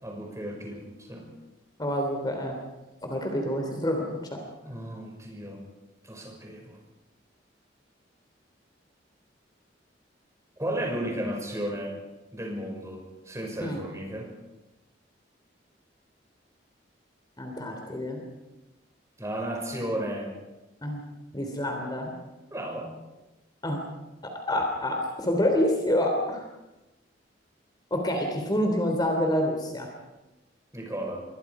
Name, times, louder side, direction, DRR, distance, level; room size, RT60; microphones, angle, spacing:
voice 1, 0.0-1.3 4.7-5.6 6.0-6.8 10.6-12.0 12.3-14.3 19.2-20.3 22.5-22.9 30.7-31.2, right 1 dB, 15° right, 1 dB, 6.0 m, -34 dB
voice 2, 1.8-2.5 3.0-4.4 13.6-13.8 17.4-18.2 20.8-21.0 21.3-22.1 23.6-23.8 24.2-26.4 27.9-29.9, left 1 dB, 25° left, 3 dB, 3.2 m, -27 dB
27.5 x 24.0 x 4.9 m, 1.0 s
head